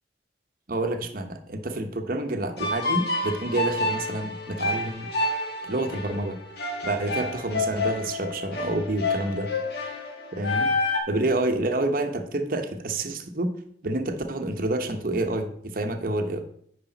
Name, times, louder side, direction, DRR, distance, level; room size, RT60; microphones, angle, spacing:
voice 1, 0.7-5.1 5.6-6.4 6.8-9.5 10.3-10.7 11.1-13.5 13.8-16.4, right 2 dB, 50° right, 6 dB, 0.9 m, -28 dB
sound 1, 2.6-11.0, left 2 dB, 60° left, 1.4 m, -29 dB
10.0 x 5.0 x 4.0 m, 0.69 s
head